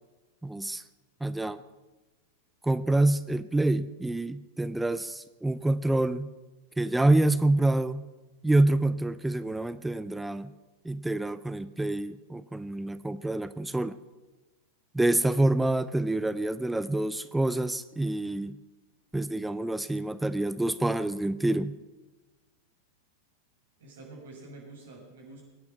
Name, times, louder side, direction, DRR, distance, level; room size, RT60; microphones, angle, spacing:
voice 1, 0.4-0.8 1.2-1.6 2.6-6.3 6.8-8.1 8.4-10.5 10.8-14.0 14.9-18.6 19.1-21.7, right 2 dB, 5° right, 14 dB, 0.6 m, -27 dB
voice 2, 23.8-25.4, right 2 dB, 60° right, -2 dB, 6.7 m, -47 dB
22.5 x 9.5 x 6.0 m, 1.2 s
figure-of-eight pair, 90°, 0 cm